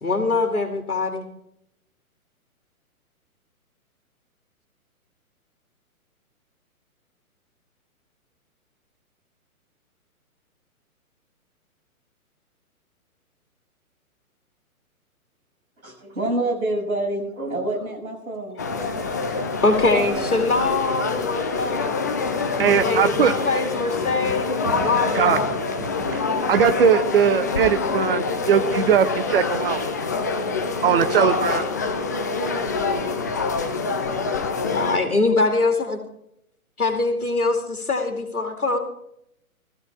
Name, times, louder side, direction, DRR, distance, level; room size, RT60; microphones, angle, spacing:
voice 1, 0.0-1.3 19.1-19.2 19.6-22.0 22.6-25.5 31.2-31.7 34.7-36.0 36.8-38.8, left 3 dB, 75° left, 3 dB, 2.6 m, -23 dB
voice 2, 15.8-18.6 19.0-19.6 19.9-20.2, right 1 dB, 70° right, 0 dB, 6.7 m, -28 dB
sound 1, 18.6-35.0, left 4 dB, 15° left, 0.5 m, -26 dB
voice 3, 22.6-23.4 24.2-24.3 24.7-25.4 25.8-29.8 30.8-31.6, right 7 dB, 40° right, 11 dB, 1.1 m, -20 dB
17.0 x 15.0 x 3.5 m, 0.77 s
figure-of-eight pair, 125°, 43 cm